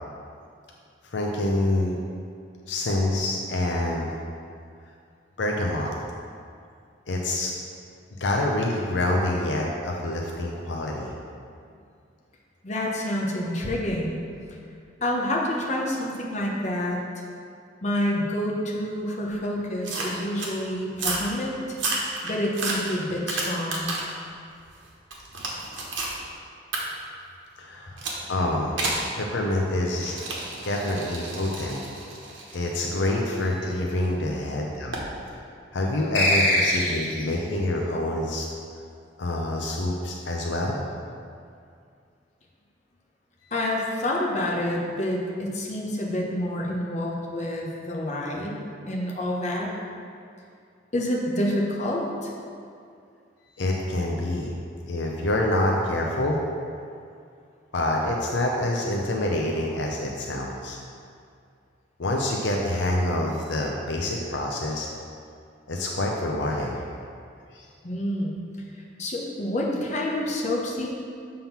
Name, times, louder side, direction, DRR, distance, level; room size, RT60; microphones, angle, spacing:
voice 1, 1.0-2.0 2.7-4.2 5.4-5.9 7.1-7.5 8.2-11.1 27.6-28.0 28.3-28.7 29.1-30.2 30.6-31.8 32.5-35.0 35.7-38.5 39.2-40.8 43.4-43.5 53.6-54.5 54.9-56.4 57.7-60.8 62.0-64.9 65.7-66.8 67.5-67.7, left 1 dB, 70° left, -1 dB, 0.6 m, -26 dB
voice 2, 12.6-14.2 15.0-17.0 17.8-21.5 22.2-23.9 43.5-49.7 50.9-52.3 67.8-68.4 68.8-70.9, left 1 dB, 35° left, -2 dB, 0.9 m, -28 dB
sound 1, 19.8-20.5 20.9-21.3 21.7-24.2 24.6-26.2 26.7-26.8 28.0-28.2 28.8-29.1 30.0-33.9 34.9-35.1, right 2 dB, 80° right, 1.2 m, -31 dB
sound 2, 36.1-37.3, equal, 90° left, 1.7 m, -22 dB
7.1 x 3.8 x 5.8 m, 2.3 s
head